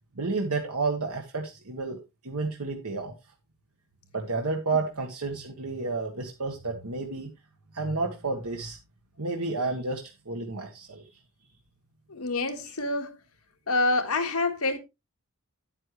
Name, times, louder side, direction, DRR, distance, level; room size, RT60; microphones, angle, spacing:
voice 1, 0.1-3.1 4.1-7.3 7.7-8.8 9.2-11.0, right 3 dB, 85° right, 1.5 m, -31 dB
voice 2, 12.1-13.2 13.7-14.8, left 2 dB, 75° left, 1.7 m, -27 dB
10.0 x 8.9 x 3.2 m
head